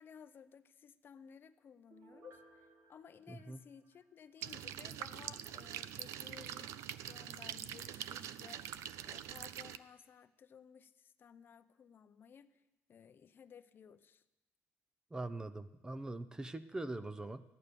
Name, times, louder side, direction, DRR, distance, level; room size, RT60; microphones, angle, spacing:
voice 1, 0.0-2.6 2.9-12.6 12.9-14.2, left 7 dB, 45° left, 13 dB, 0.6 m, -57 dB
Piano, 1.9-4.6 5.0-5.1, right 2 dB, 55° right, 2.9 m, -64 dB
voice 2, 3.3-3.6 15.1-17.4, right 2 dB, 15° right, 13 dB, 0.6 m, -42 dB
sound 1, 4.4-9.8, right 11 dB, 85° right, 0.5 m, -44 dB
14.0 x 11.0 x 6.8 m, 0.99 s
cardioid pair, 120°, 5 cm